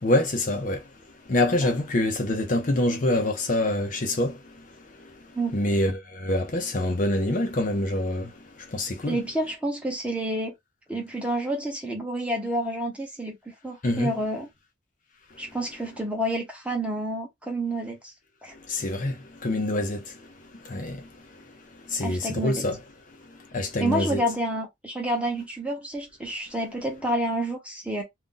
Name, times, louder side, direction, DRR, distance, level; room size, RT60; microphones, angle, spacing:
voice 1, 0.0-9.2 13.8-14.1 15.3-15.6 18.5-22.8 23.1-24.2, left 1 dB, 40° left, 0.6 m, -27 dB
voice 2, 9.1-10.5 10.9-14.5 15.4-18.1 18.4-18.5 22.0-22.6 23.8-28.0, right 1 dB, 5° right, 0.8 m, -29 dB
2.6 x 2.1 x 3.7 m
head